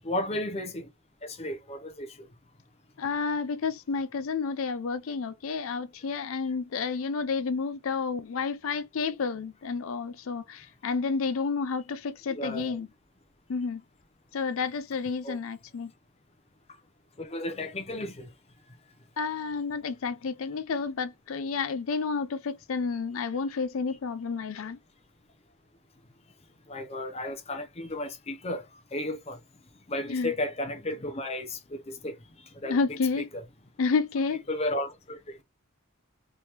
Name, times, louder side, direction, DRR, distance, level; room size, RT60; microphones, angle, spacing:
voice 1, 0.0-0.9 1.2-2.3 12.3-12.8 15.2-15.4 17.2-18.3 26.7-28.6 28.9-29.4 29.9-32.2 32.6-32.8 33.2-33.4 34.5-35.4, left 1 dB, 30° left, 0.6 m, -33 dB
voice 2, 3.0-12.9 13.5-13.8 14.3-15.9 19.2-24.8 30.1-30.3 32.6-33.3 33.8-34.4, left 5 dB, 70° left, 0.5 m, -30 dB
3.5 x 3.0 x 2.9 m
head